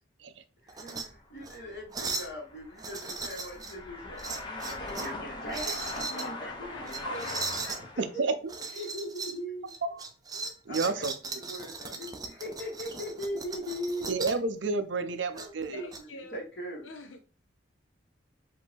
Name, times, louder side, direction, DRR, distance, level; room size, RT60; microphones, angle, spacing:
voice 1, 0.6-7.4 7.8-8.2 8.7-9.7 10.7-11.0 11.4-14.1 15.3-15.9 16.3-16.9, equal, 60° left, 2.1 m, -39 dB
sound 1, 0.7-1.1 1.4-1.6 1.9-2.3 2.8-3.8 4.2-5.2 5.5-6.3 6.9-7.8 8.5-9.4 9.7-14.4 15.4-16.0, right 4 dB, 20° right, 0.4 m, -38 dB
sound 2, 1.0-8.1, left 2 dB, 25° left, 0.7 m, -41 dB
voice 2, 5.7-8.0 8.6-8.9 15.7-16.4 16.8-17.2, left 3 dB, 85° left, 0.6 m, -48 dB
voice 3, 8.0-8.3 9.9-10.0 10.4-11.1 14.1-15.8, right 3 dB, 75° right, 0.5 m, -30 dB
5.0 x 2.7 x 3.5 m
head